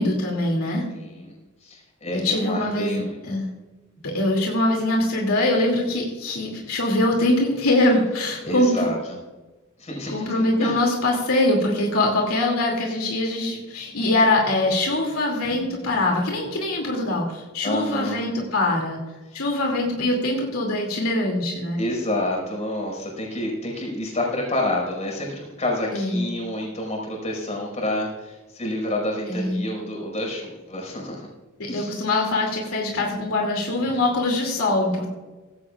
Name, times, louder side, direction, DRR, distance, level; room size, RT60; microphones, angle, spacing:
voice 1, 0.0-0.9 2.1-3.5 4.0-8.9 10.1-19.0 19.3-21.8 25.9-26.2 29.3-29.6 31.6-35.1, left 2 dB, 80° left, 0 dB, 2.6 m, -23 dB
voice 2, 0.9-1.3 1.6-3.4 8.4-9.0 9.8-10.7 17.6-18.2 19.3-19.4 21.8-31.3 31.7-31.9, left 1 dB, 35° left, -1 dB, 5.3 m, -28 dB
17.5 x 16.0 x 2.5 m, 1.2 s
head